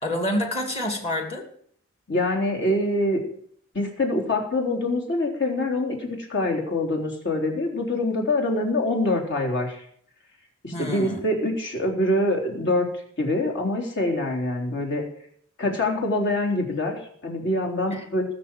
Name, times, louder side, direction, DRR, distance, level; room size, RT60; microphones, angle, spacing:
voice 1, 0.0-1.4 10.7-11.2 17.9-18.1, left 1 dB, 30° left, 3 dB, 2.4 m, -28 dB
voice 2, 2.1-3.2 3.7-9.8 10.6-12.9 13.2-15.0 15.6-18.3, left 1 dB, 60° left, 1 dB, 3.8 m, -25 dB
20.0 x 6.8 x 7.6 m, 0.63 s
head